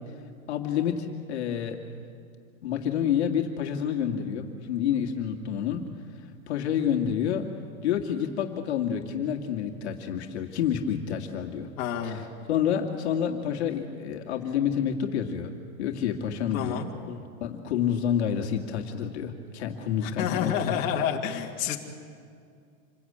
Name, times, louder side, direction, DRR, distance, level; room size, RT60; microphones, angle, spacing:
voice 1, 0.5-1.8 2.6-5.8 6.5-7.5 7.8-11.7 12.0-16.8 17.1-20.8, left 8 dB, 50° left, 2 dB, 2.1 m, -28 dB
voice 2, 11.8-12.2 16.5-16.9 20.0-21.8, left 9 dB, 30° left, -1 dB, 2.3 m, -29 dB
27.0 x 22.0 x 8.8 m, 2.3 s
supercardioid pair, 175°, 42 cm